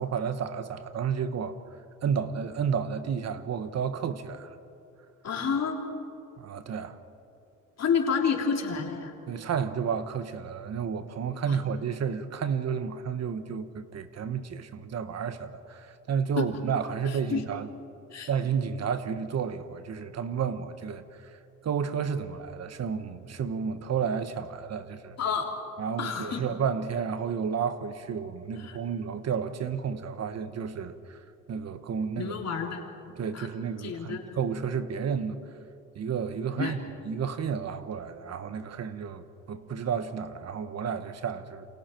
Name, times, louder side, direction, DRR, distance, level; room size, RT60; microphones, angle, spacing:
voice 1, 0.0-1.6 2.0-4.5 6.4-7.0 9.3-17.7 18.3-21.4 21.6-25.2 25.8-31.2 31.5-32.3 33.2-35.4 35.9-36.8 37.0-41.7, right 7 dB, 60° right, 1.3 m, -31 dB
voice 2, 5.2-5.8 7.8-9.1 11.4-11.6 16.4-16.5 17.0-17.4 18.1-18.3 25.2-25.5 26.0-26.4 28.6-28.8 32.2-32.8 33.3-33.5 33.8-34.2 36.5-36.7, left 6 dB, 60° left, 3.3 m, -29 dB
28.5 x 27.0 x 4.6 m
cardioid pair, 90°, 30 cm